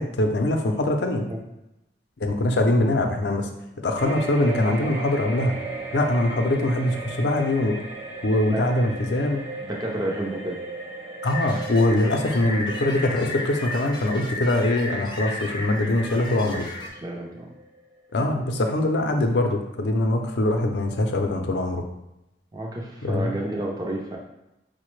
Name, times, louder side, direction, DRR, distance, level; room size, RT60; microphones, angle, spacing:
voice 1, 0.0-1.3 2.2-3.5 3.8-5.6 5.9-7.8 8.2-9.4 11.2-16.7 18.1-21.8 23.0-23.3, left 1 dB, 75° left, 4 dB, 0.5 m, -23 dB
sound 1, 4.0-18.6 18.9-19.1, right 3 dB, 45° right, 1.0 m, -37 dB
voice 2, 9.7-10.6 17.0-17.5 22.5-24.2, right 1 dB, 20° right, -1 dB, 0.5 m, -30 dB
sound 2, 11.2-16.9, left 1 dB, 25° left, 0.5 m, -34 dB
4.9 x 2.1 x 3.1 m, 0.90 s
head